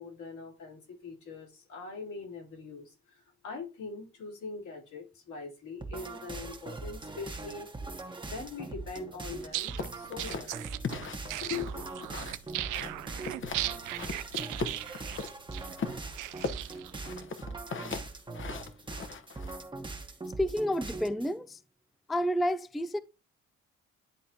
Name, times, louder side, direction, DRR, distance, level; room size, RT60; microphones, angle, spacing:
voice 1, 0.0-7.7 8.1-10.7 11.4-11.9, left 4 dB, 75° left, 3.1 m, -42 dB
sound 1, 5.8-21.3, right 3 dB, 15° right, 1.1 m, -41 dB
sound 2, 9.4-17.0, right 15 dB, 90° right, 0.5 m, -38 dB
sound 3, 9.8-12.5 12.7-13.7 14.0-15.3 15.8-19.6, left 4 dB, 40° left, 1.0 m, -38 dB
voice 2, 20.4-21.6 22.1-23.0, equal, ahead, 0.4 m, -30 dB
10.5 x 3.7 x 2.8 m
cardioid pair, 90°, 30 cm